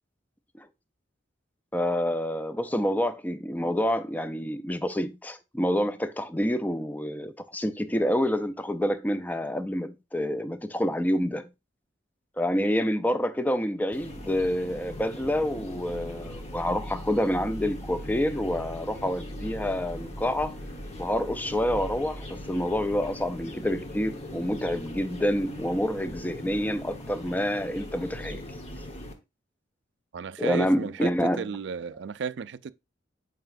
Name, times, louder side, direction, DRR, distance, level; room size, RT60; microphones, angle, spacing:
voice 1, 1.7-11.5 12.4-20.5 21.0-28.4 30.4-31.4, equal, 10° left, 0.4 m, -28 dB
sound 1, 13.9-29.1, left 1 dB, 35° left, 1.1 m, -40 dB
voice 2, 30.1-32.7, right 6 dB, 65° right, 0.4 m, -34 dB
7.7 x 4.9 x 2.5 m
head